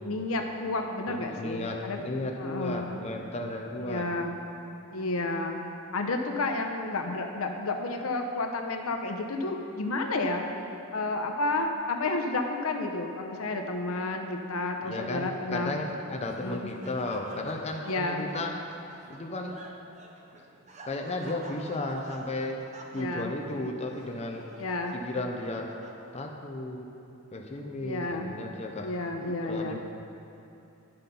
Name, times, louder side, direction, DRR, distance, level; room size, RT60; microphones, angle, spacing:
voice 1, 0.0-2.0 2.4-2.9 3.8-4.4 4.9-5.6 5.9-10.4 10.9-15.7 16.4-16.7 17.9-18.3 22.9-23.3 24.6-25.0 27.8-28.3 28.8-29.8, left 2 dB, 85° left, 4 dB, 0.8 m, -31 dB
voice 2, 1.1-4.1 14.8-18.5 19.1-19.6 20.8-22.6 22.9-24.5 24.9-25.7 26.1-26.9 27.3-28.9 29.4-29.8, left 2 dB, 30° left, 1 dB, 0.6 m, -34 dB
Laughter, 15.9-26.4, right 2 dB, 35° right, 0.8 m, -50 dB
10.5 x 5.8 x 5.3 m, 2.8 s
head